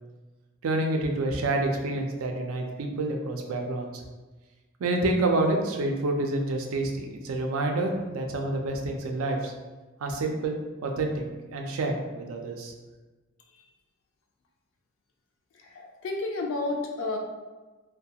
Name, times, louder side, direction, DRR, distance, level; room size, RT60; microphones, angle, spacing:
voice 1, 0.6-4.0 4.8-9.5 10.0-11.2 11.5-12.7, right 2 dB, 75° right, 3 dB, 0.4 m, -28 dB
voice 2, 15.5-17.2, left 2 dB, 65° left, 1 dB, 0.4 m, -31 dB
2.3 x 2.2 x 2.7 m, 1.2 s
head